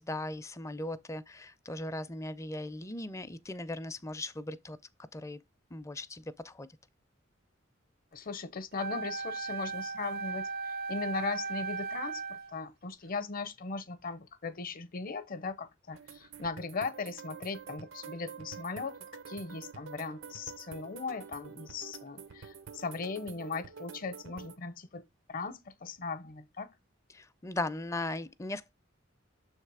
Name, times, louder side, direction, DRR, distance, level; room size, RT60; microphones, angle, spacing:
voice 1, 0.0-4.8 5.1-5.4 5.7-6.7 27.1-28.7, left 2 dB, 15° left, 0.4 m, -38 dB
voice 2, 8.1-25.0 25.3-26.7, left 4 dB, 45° left, 0.7 m, -38 dB
Wind instrument woodwind instrument, 8.8-12.6, right 4 dB, 50° right, 0.5 m, -37 dB
sound 1, 15.9-24.6, right 6 dB, 85° right, 0.8 m, -48 dB
6.9 x 3.3 x 4.7 m
head